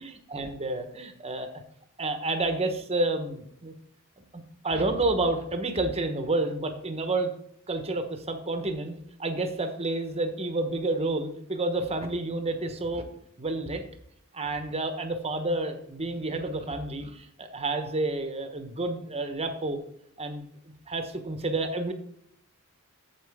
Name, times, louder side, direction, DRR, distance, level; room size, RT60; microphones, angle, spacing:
voice 1, 0.0-1.6 2.0-3.7 4.3-7.3 7.7-8.9 9.2-13.1 13.4-13.8 14.3-19.8 20.2-20.4 20.9-21.9, right 2 dB, 30° right, 7 dB, 1.2 m, -30 dB
8.7 x 7.4 x 3.6 m, 0.70 s
head